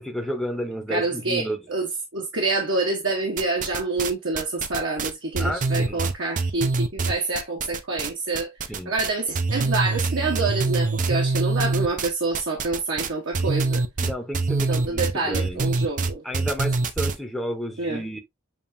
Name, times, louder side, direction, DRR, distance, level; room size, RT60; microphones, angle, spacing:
voice 1, 0.0-1.6 5.4-6.0 8.7-8.9 14.0-15.7 16.2-18.2, equal, ahead, 0.8 m, -31 dB
voice 2, 0.9-8.5 8.9-13.8 14.7-16.2 17.8-18.0, right 3 dB, 60° right, 1.1 m, -27 dB
sound 1, 3.4-4.1 4.4-8.1 8.3-9.1 9.3-17.2, right 3 dB, 40° right, 0.5 m, -24 dB
7.2 x 2.8 x 2.6 m
head